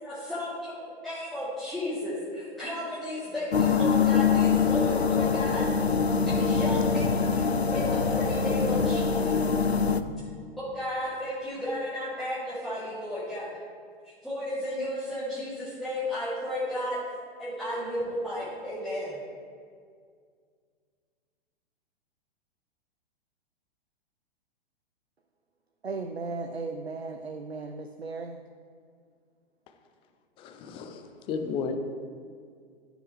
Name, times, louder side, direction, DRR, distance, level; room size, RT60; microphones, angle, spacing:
voice 1, 0.0-5.6 6.2-7.4 7.7-9.5 10.6-13.6 14.0-17.0 17.4-19.2, left 1 dB, ahead, -13 dB, 2.6 m, -34 dB
sound 1, 3.5-10.0, left 5 dB, 85° left, 0.5 m, -24 dB
voice 2, 25.8-28.4, right 3 dB, 90° right, 5 dB, 0.6 m, -36 dB
voice 3, 30.4-31.8, left 5 dB, 20° left, 7 dB, 0.5 m, -33 dB
14.5 x 6.4 x 3.2 m, 2.1 s
figure-of-eight pair, 110°, 31 cm